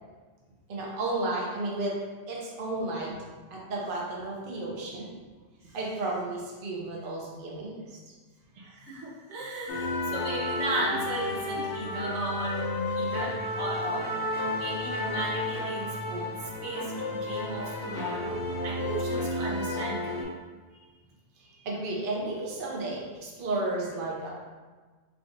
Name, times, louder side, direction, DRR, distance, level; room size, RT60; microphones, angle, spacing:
voice 1, 0.7-1.9 2.3-3.2 3.5-5.1 5.7-7.8 21.6-24.3, right 2 dB, 55° right, -3 dB, 0.9 m, -32 dB
voice 2, 8.5-12.6 13.0-14.1 14.6-16.3 16.6-18.4 18.6-20.3 21.5-21.6, right 2 dB, 85° right, -4 dB, 1.2 m, -35 dB
sound 1, 9.7-20.2, left 1 dB, 60° left, 1.0 m, -32 dB
4.6 x 3.6 x 2.6 m, 1.4 s
omnidirectional pair, 1.1 m